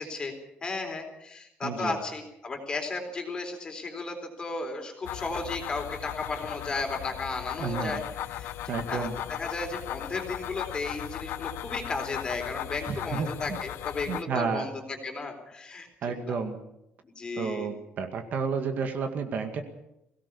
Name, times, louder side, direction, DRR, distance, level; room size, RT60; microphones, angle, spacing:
voice 1, 0.0-15.9 16.2-16.4 17.0-17.7, left 3 dB, 25° left, 4 dB, 3.9 m, -35 dB
voice 2, 1.6-2.0 7.6-8.0 8.7-9.1 12.9-13.6 14.1-14.7 16.0-16.6 17.4-19.6, right 5 dB, 50° right, 6 dB, 2.1 m, -31 dB
sound 1, 5.0-14.2, left 12 dB, 90° left, 1.0 m, -37 dB
22.0 x 17.5 x 7.1 m, 0.85 s
cardioid pair, 175°, 4 cm